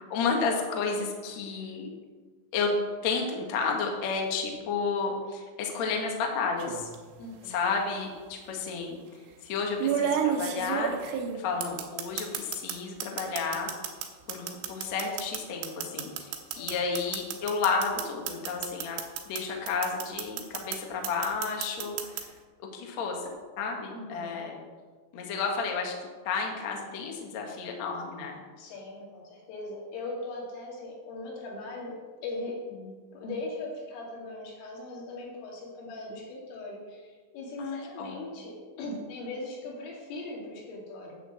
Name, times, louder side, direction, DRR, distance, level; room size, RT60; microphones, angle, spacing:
voice 1, 0.0-1.9 2.5-2.7 3.0-6.9 7.5-9.0 9.4-10.9 11.3-13.7 14.3-19.0 19.3-22.3 22.7-23.2 23.6-24.6 25.1-25.9 26.3-28.4 37.6-38.2, left 5 dB, 65° left, 1 dB, 1.7 m, -31 dB
sound 1, 6.6-7.0 8.2-8.3 9.8-12.8 13.0-19.4 19.7-20.8 21.0-22.2, right 8 dB, 90° right, 3.4 m, -31 dB
voice 2, 7.2-7.6 16.5-16.8 23.9-24.4 28.6-31.9 32.2-32.6 33.1-41.2, left 2 dB, 90° left, -3 dB, 5.0 m, -39 dB
10.0 x 6.0 x 7.5 m, 1.4 s
omnidirectional pair, 5.6 m